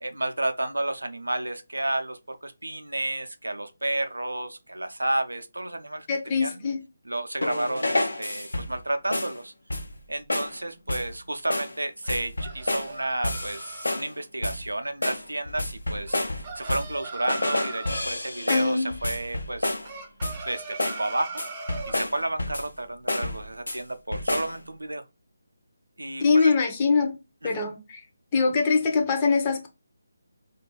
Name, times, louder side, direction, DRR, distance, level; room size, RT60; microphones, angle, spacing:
voice 1, 0.0-6.7 7.0-9.5 10.1-19.7 20.5-20.6 21.0-21.4 21.9-25.0 26.0-26.5 27.4-27.7, right 1 dB, 80° right, 0.4 m, -31 dB
voice 2, 6.1-6.8 18.5-18.9 26.2-27.2 27.4-28.0 28.3-29.7, left 4 dB, 25° left, 0.5 m, -23 dB
sound 1, 7.4-8.8 9.1-9.4 9.7-10.0 10.3-10.6 10.9-11.2 11.5-11.8 12.1-12.9 13.2-14.1 14.4-14.7 15.0-17.0 17.3-19.9 20.2-20.5 20.8-21.1 21.4-22.8 23.1-23.8 24.1-24.6, left 1 dB, 75° left, 0.5 m, -30 dB
sound 2, 12.0-14.0 16.1-18.1 19.8-22.0, right 4 dB, 25° right, 0.4 m, -40 dB
2.4 x 2.2 x 2.9 m
figure-of-eight pair, 150°, 0 cm